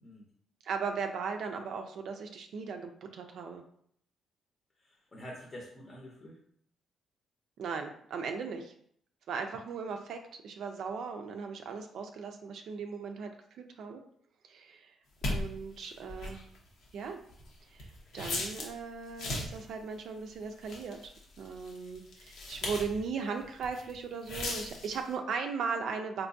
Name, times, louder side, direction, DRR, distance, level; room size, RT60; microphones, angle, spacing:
voice 1, 0.6-3.6 7.6-8.7 9.3-13.3 13.6-14.0 14.5-14.9 15.3-16.4 16.9-17.2 17.7-26.3, right 5 dB, 70° right, 5 dB, 0.3 m, -38 dB
voice 2, 4.8-6.4 17.8-18.2, equal, 35° left, -2 dB, 0.7 m, -48 dB
sound 1, 15.2-18.8 19.1-19.7 20.3-23.1 23.4-23.9 24.2-25.1, left 2 dB, 75° left, 0.8 m, -38 dB
3.4 x 2.9 x 2.6 m, 0.65 s
cardioid pair, 90°, 0 cm